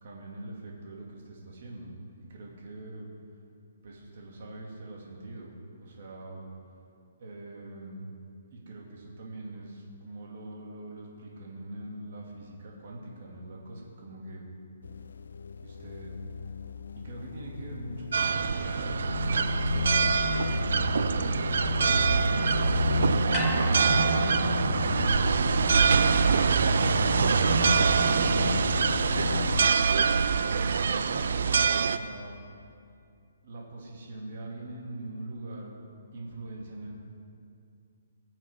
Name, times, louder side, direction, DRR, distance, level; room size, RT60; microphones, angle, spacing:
voice 1, 0.0-3.1 3.8-6.5 7.2-8.1 8.5-14.5 15.6-16.1 17.0-23.4 24.5-25.8 28.1-28.8 29.9-32.4 33.4-35.7 36.1-36.9, right 2 dB, 50° right, -2 dB, 2.2 m, -42 dB
sound 1, 14.8-29.7, left 5 dB, 85° left, 0.4 m, -32 dB
sound 2, 18.1-32.0, right 5 dB, 70° right, 0.4 m, -25 dB
sound 3, 23.3-27.7 28.0-28.1, left 2 dB, 10° left, 0.7 m, -41 dB
20.5 x 7.3 x 3.6 m, 2.4 s
hypercardioid pair, 170°, 0 cm